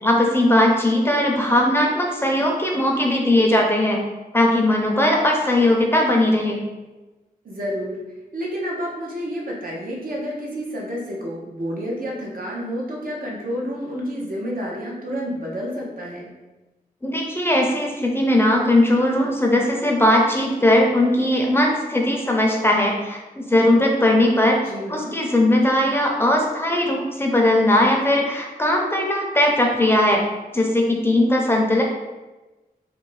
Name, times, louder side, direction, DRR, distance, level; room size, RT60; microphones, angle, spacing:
voice 1, 0.0-4.0 4.3-6.6 17.0-23.2 23.5-24.6 24.9-30.2 30.5-31.8, left 1 dB, 15° left, 0 dB, 0.5 m, -19 dB
voice 2, 7.4-8.0 8.3-16.3 24.6-25.2, equal, 65° right, -3 dB, 0.7 m, -29 dB
2.6 x 2.2 x 3.1 m, 1.1 s
wide cardioid pair, 75°, 16 cm